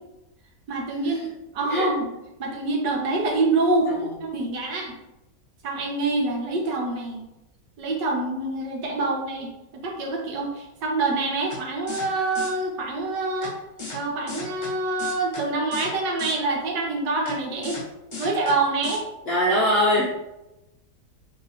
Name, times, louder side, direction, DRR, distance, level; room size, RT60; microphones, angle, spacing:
voice 1, 0.7-2.1 2.4-4.9 5.6-7.2 7.8-13.6 13.9-17.8 18.2-19.0, right 2 dB, 90° right, 0 dB, 1.5 m, -26 dB
sound 1, 11.5-11.6 11.9-12.1 12.3-12.5 13.4-13.5 13.8-14.0 14.3-14.7 15.0-15.4 15.7-15.9 16.2-16.3 17.3-17.4 17.6-17.8 18.1-18.5 18.8-19.0, left 3 dB, 30° left, 1.1 m, -35 dB
voice 2, 19.3-20.1, equal, 65° left, -5 dB, 0.6 m, -21 dB
3.2 x 2.8 x 4.1 m, 0.94 s
omnidirectional pair, 1.8 m